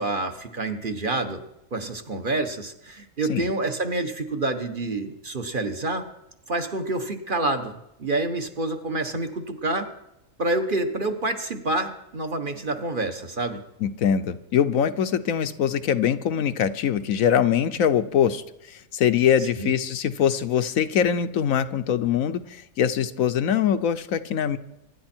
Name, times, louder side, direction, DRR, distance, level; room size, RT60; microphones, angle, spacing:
voice 1, 0.0-1.4 1.7-6.1 6.5-9.9 10.4-13.6 19.6-19.7, right 2 dB, 40° right, 7 dB, 1.4 m, -28 dB
voice 2, 13.8-18.4 18.7-24.6, left 8 dB, 75° left, 12 dB, 1.2 m, -23 dB
24.5 x 11.0 x 4.5 m, 0.87 s
omnidirectional pair, 1.5 m